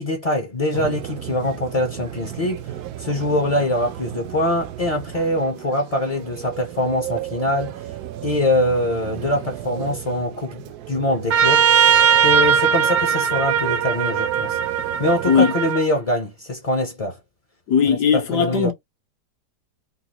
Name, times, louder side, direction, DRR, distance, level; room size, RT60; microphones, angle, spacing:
voice 1, 0.0-7.9 8.2-11.7 12.2-14.6 15.0-17.2 17.9-18.0 18.3-18.7, left 1 dB, 35° left, 0.5 m, -23 dB
sound 1, 0.7-15.7, right 13 dB, 75° right, 1.1 m, -34 dB
Trumpet, 11.3-15.8, right 7 dB, 55° right, 0.7 m, -19 dB
voice 2, 17.7-18.7, left 7 dB, 75° left, 1.5 m, -18 dB
3.8 x 2.4 x 2.9 m
omnidirectional pair, 1.8 m